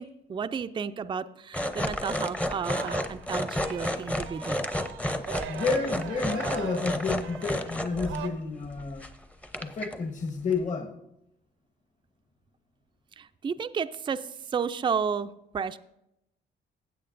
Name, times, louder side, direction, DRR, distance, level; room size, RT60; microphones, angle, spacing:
voice 1, 0.0-4.7 13.2-15.8, right 6 dB, 25° right, 0.4 m, -32 dB
sound 1, 1.5-8.2 8.6-9.1 9.4-10.0 10.5-10.6, left 1 dB, 5° left, 0.7 m, -31 dB
Singing, 2.5-3.3 3.5-8.3, right 9 dB, 90° right, 0.8 m, -41 dB
voice 2, 5.5-9.0 9.6-10.9, left 4 dB, 40° left, 1.2 m, -30 dB
15.5 x 7.8 x 2.5 m
cardioid pair, 90°, 20 cm